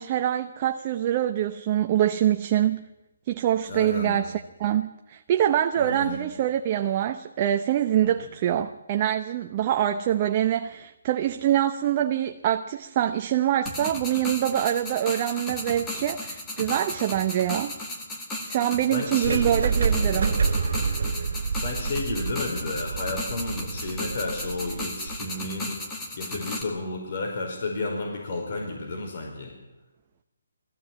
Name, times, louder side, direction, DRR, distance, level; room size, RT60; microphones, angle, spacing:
voice 1, 0.0-2.8 3.3-17.8 18.5-20.4, right 11 dB, 25° right, 0.8 m, -25 dB
voice 2, 3.7-4.2 5.8-6.2 8.0-8.2 18.9-19.6 21.5-25.7 26.1-29.5, left 2 dB, 45° left, 4.9 m, -32 dB
sound 1, 13.7-26.6, left 1 dB, 10° left, 2.0 m, -35 dB
sound 2, 19.2-25.2, right 5 dB, 60° right, 3.1 m, -28 dB
21.0 x 15.5 x 8.7 m
hypercardioid pair, 165°, 0 cm